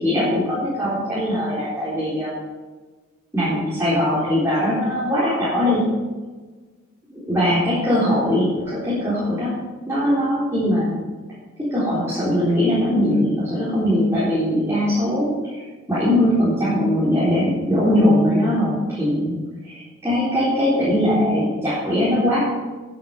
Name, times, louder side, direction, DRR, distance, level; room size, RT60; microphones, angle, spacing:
voice 1, 0.0-2.3 3.3-5.8 7.1-9.5 9.9-10.9 11.6-15.6 15.9-19.4 19.6-22.5, left 1 dB, 10° right, -11 dB, 3.9 m, -20 dB
12.0 x 9.3 x 5.9 m, 1.3 s
head